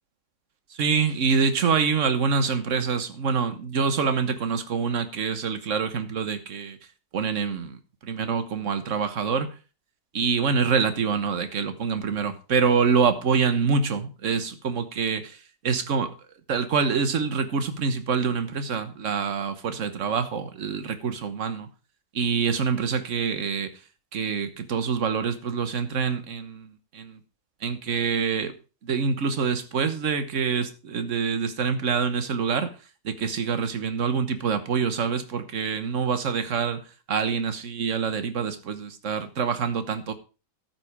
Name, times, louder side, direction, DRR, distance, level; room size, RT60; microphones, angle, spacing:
voice 1, 0.7-6.8 7.1-9.5 10.1-15.4 15.6-16.1 16.5-21.7 22.1-23.7 24.1-27.2 27.6-28.5 28.8-32.7 33.0-36.8 37.1-40.1, right 5 dB, 55° right, 10 dB, 1.5 m, -26 dB
13.5 x 6.2 x 4.9 m, 0.33 s
omnidirectional pair, 1.7 m